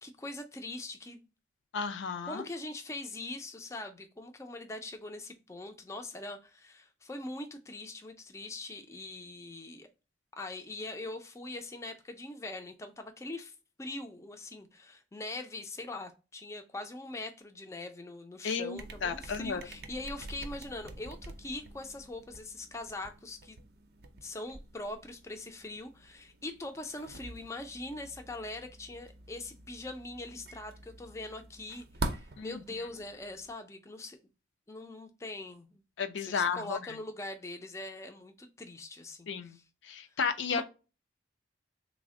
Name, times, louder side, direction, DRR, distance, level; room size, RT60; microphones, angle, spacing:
voice 1, 0.0-1.3 2.3-9.9 10.4-23.6 24.2-34.2 34.7-35.8 36.3-39.3 40.5-40.6, left 2 dB, 15° left, 0.3 m, -42 dB
voice 2, 1.7-2.5 18.4-19.7 32.4-32.6 36.0-37.0 39.3-39.6 39.8-40.6, left 6 dB, 80° left, 0.4 m, -33 dB
sound 1, 18.8-33.5, right 2 dB, 55° right, 0.4 m, -45 dB
3.4 x 2.1 x 3.5 m
head